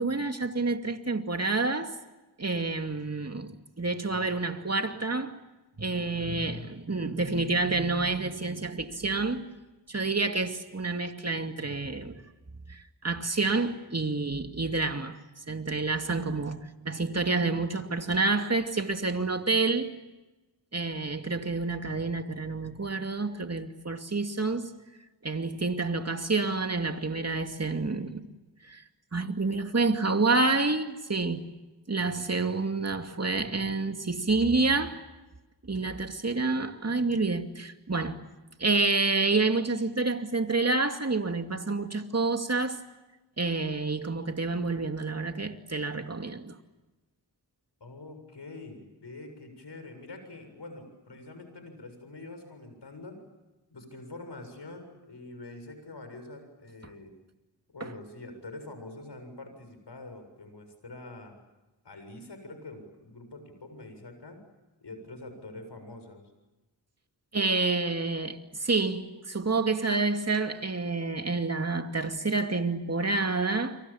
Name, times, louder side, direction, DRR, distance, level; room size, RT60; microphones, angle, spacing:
voice 1, 0.0-2.0 2.4-5.4 5.8-9.4 9.9-12.2 12.7-15.2 15.5-19.9 20.7-24.7 25.2-28.2 28.6-28.8 29.1-31.5 31.9-35.0 35.6-38.3 38.6-42.8 43.4-46.6 57.8-57.9 67.3-73.8, right 3 dB, 35° right, 2.5 m, -28 dB
voice 2, 47.8-53.2 53.7-57.1 57.7-61.3 61.8-64.4 64.8-66.2, left 2 dB, 70° left, 7.2 m, -45 dB
30.0 x 24.5 x 7.3 m
cardioid pair, 40°, 43 cm